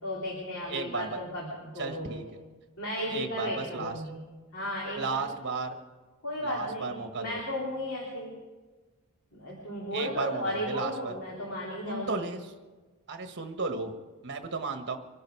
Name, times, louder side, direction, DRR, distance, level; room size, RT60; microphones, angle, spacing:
voice 1, 0.0-2.2 2.8-4.2 4.5-5.2 6.2-8.4 9.3-12.2, equal, 60° left, -4 dB, 3.5 m, -35 dB
voice 2, 0.7-1.2 1.8-2.2 3.1-3.9 4.9-5.8 6.4-7.4 9.9-11.1 11.8-12.4 13.1-13.9 14.2-15.0, right 4 dB, 50° right, 6 dB, 1.4 m, -34 dB
25.0 x 12.0 x 4.7 m, 1.3 s
head